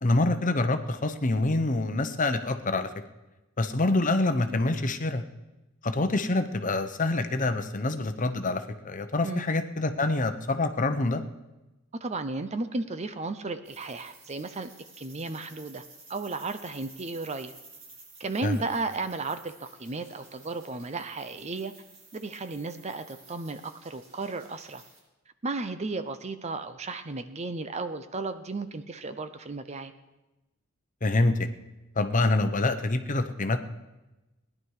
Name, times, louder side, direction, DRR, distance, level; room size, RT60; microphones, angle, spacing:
voice 1, 0.0-2.9 3.6-5.2 5.8-11.2 18.4-18.6 31.0-31.5 32.0-33.6, left 2 dB, 40° left, 9 dB, 0.9 m, -26 dB
voice 2, 12.0-14.7 15.0-15.8 16.1-17.5 18.2-21.7 22.1-24.8 25.4-29.9, right 3 dB, 30° right, 10 dB, 0.7 m, -34 dB
sound 1, 13.6-25.0, right 3 dB, 85° right, 6.5 m, -53 dB
18.0 x 11.0 x 4.8 m, 1.0 s
head